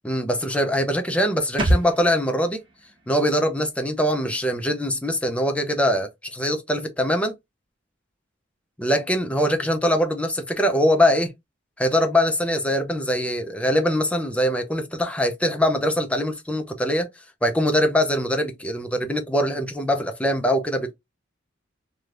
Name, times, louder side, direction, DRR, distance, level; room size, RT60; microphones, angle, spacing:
voice 1, 0.0-2.6 3.1-7.3 8.8-11.3 11.8-17.1 17.4-20.9, equal, 5° left, 0.5 m, -22 dB
sound 1, 1.6-5.1 5.4-5.5, right 1 dB, 25° right, 1.1 m, -29 dB
3.2 x 2.2 x 2.5 m
head